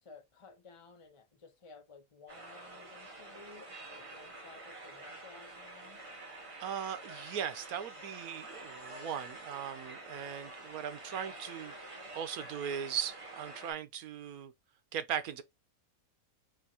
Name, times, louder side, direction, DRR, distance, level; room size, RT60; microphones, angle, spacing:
voice 1, 0.0-6.0, left 4 dB, 30° left, 0.6 m, -56 dB
sound 1, 2.3-13.7, right 2 dB, 30° right, 0.7 m, -48 dB
voice 2, 6.6-14.5 14.9-15.4, right 8 dB, 85° right, 1.2 m, -39 dB
4.4 x 2.5 x 4.2 m
omnidirectional pair, 1.5 m